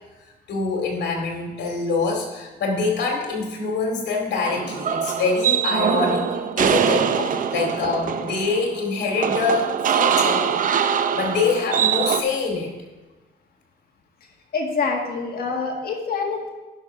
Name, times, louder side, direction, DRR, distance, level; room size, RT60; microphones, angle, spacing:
voice 1, 0.5-10.5 11.1-12.7, left 4 dB, 90° left, 1 dB, 2.4 m, -25 dB
sound 1, 4.5-12.2, right 8 dB, 50° right, 0.5 m, -23 dB
voice 2, 14.5-16.5, left 4 dB, 60° left, 1 dB, 1.8 m, -26 dB
11.0 x 5.6 x 4.7 m, 1.2 s
cardioid pair, 125°, 18 cm